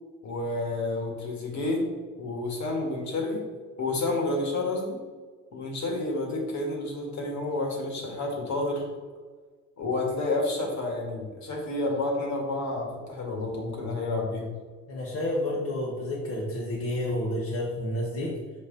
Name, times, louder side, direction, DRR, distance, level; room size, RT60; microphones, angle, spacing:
voice 1, 0.2-1.8 2.2-3.4 3.8-5.0 5.5-8.9 9.8-14.5, left 2 dB, 70° left, 0 dB, 1.9 m, -30 dB
voice 2, 14.9-18.4, left 1 dB, 50° left, -4 dB, 1.3 m, -30 dB
5.8 x 4.9 x 4.0 m, 1.4 s
cardioid pair, 90°, 30 cm